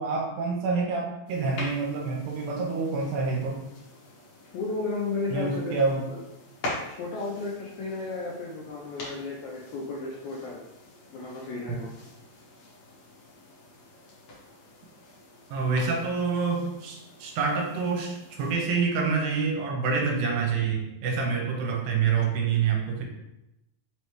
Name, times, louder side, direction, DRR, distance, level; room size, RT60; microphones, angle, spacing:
voice 1, 0.0-3.6 5.3-6.0 11.7-11.8 15.5-23.0, right 5 dB, 80° right, 0 dB, 2.4 m, -27 dB
sound 1, 1.3-18.5, left 1 dB, 60° left, 2.0 m, -44 dB
voice 2, 4.5-5.7 6.1-6.2 7.0-10.6 11.1-11.9, left 3 dB, 85° left, -5 dB, 1.7 m, -33 dB
5.5 x 3.2 x 3.0 m, 0.89 s
omnidirectional pair, 4.1 m